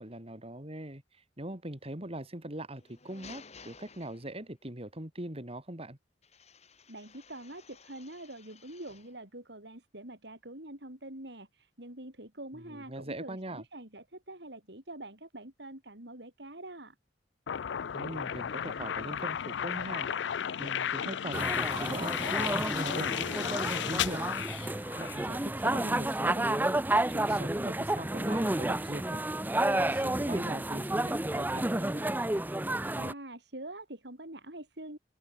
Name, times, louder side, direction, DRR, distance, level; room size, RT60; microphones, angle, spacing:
voice 1, 0.0-6.0 12.6-13.6 17.9-20.1 20.6-24.4 25.0-26.6 26.9-29.2 29.7-32.1, right 1 dB, 35° right, 3.4 m, -41 dB
sound 1, 2.7-4.7 6.2-9.2, left 5 dB, 40° left, 5.6 m, -54 dB
voice 2, 6.9-17.0 33.0-35.0, right 1 dB, 65° right, 7.3 m, -45 dB
sound 2, 17.5-25.3, left 9 dB, 75° left, 0.4 m, -34 dB
sound 3, 21.3-33.1, right 1 dB, 10° right, 0.7 m, -31 dB
open air
head